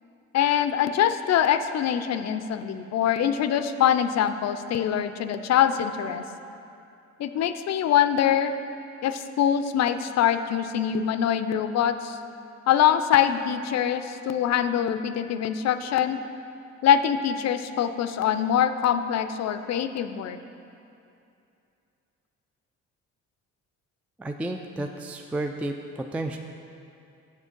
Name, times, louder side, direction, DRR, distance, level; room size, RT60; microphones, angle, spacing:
voice 1, 0.3-6.2 7.2-8.5 9.0-12.2 12.7-16.2 16.8-20.4, left 9 dB, 60° left, 10 dB, 0.5 m, -24 dB
voice 2, 24.2-26.4, right 2 dB, 5° right, 5 dB, 0.3 m, -32 dB
7.4 x 6.3 x 5.2 m, 2.7 s
cardioid pair, 90°, 30 cm